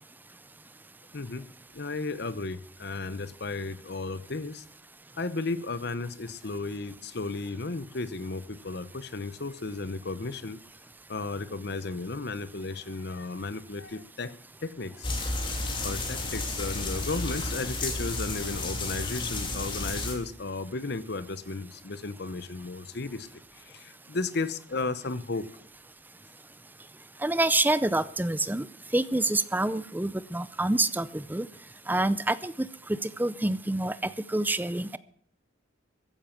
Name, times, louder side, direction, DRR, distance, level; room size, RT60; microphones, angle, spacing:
voice 1, 1.1-1.5 1.7-4.6 5.2-10.6 11.1-14.3 14.6-15.2 15.8-25.5, left 3 dB, 60° left, 15 dB, 0.9 m, -34 dB
sound 1, 15.0-20.1, left 2 dB, 25° left, 3.0 m, -32 dB
voice 2, 27.2-28.7 28.9-31.5 31.9-35.0, right 2 dB, 10° right, 16 dB, 0.5 m, -27 dB
15.0 x 10.0 x 5.9 m, 0.63 s
head